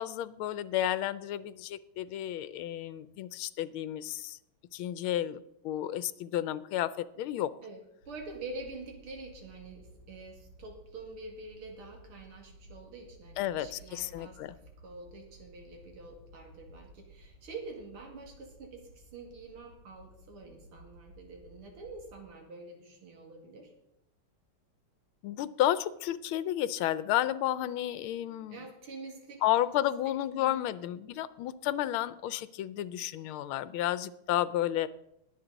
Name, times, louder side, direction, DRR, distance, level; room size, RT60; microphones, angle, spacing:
voice 1, 0.0-4.4 4.7-5.4 5.6-6.9 7.2-7.5 13.4-14.5 25.2-28.6 29.4-34.9, left 12 dB, 80° left, 16 dB, 1.4 m, -31 dB
voice 2, 7.6-14.4 14.8-23.7 28.5-29.4 30.3-30.7, right 3 dB, 80° right, 2 dB, 3.0 m, -46 dB
sound 1, 8.0-22.2, equal, 50° right, 3.3 m, -56 dB
21.0 x 7.6 x 4.0 m, 0.81 s
omnidirectional pair, 2.4 m